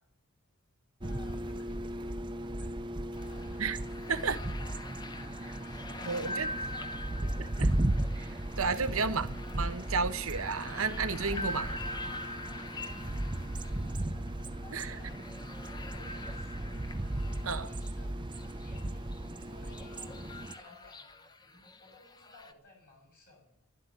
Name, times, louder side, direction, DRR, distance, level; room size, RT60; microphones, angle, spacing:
voice 1, 1.0-3.6 4.0-6.9 8.8-9.0 11.3-16.9 17.2-19.1 19.4-23.6, left 3 dB, 45° left, 7.5 m, -57 dB
sound 1, 1.0-20.5, right 1 dB, 20° right, 0.7 m, -36 dB
sound 2, 3.2-22.5, left 2 dB, 20° left, 0.9 m, -45 dB
voice 2, 6.0-6.5 7.4-7.7 8.1-8.3 8.6-9.3 9.5-11.7 14.7-14.9 17.4-17.7, right 4 dB, 70° right, 1.1 m, -32 dB
12.0 x 12.0 x 9.6 m
head